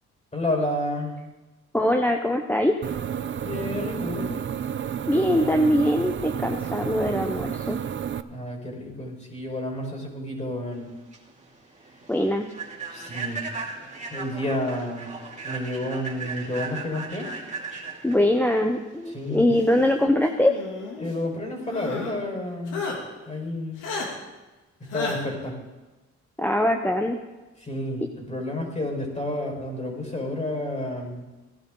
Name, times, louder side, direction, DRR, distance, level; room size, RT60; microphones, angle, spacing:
voice 1, 0.3-1.1 3.4-4.3 8.3-10.9 12.9-13.4 14.1-15.1 15.4-17.3 19.1-19.5 21.0-22.8 23.2-23.8 24.8-25.6 27.6-31.2, left 1 dB, 25° left, 1 dB, 5.0 m, -30 dB
voice 2, 1.7-2.7 5.1-7.8 12.1-12.5 18.0-20.5 26.4-27.2, left 1 dB, 5° left, 3 dB, 0.8 m, -22 dB
sound 1, 2.8-8.2, right 8 dB, 40° right, 0.6 m, -31 dB
Human voice / Train, 10.8-19.7, right 4 dB, 25° right, 2.7 m, -37 dB
sound 2, 20.3-21.1 21.7-22.2 22.7-23.0 23.8-24.1 24.9-25.2, left 4 dB, 85° left, 2.8 m, -32 dB
17.5 x 11.5 x 3.9 m, 1.1 s
cardioid pair, 90°, 30 cm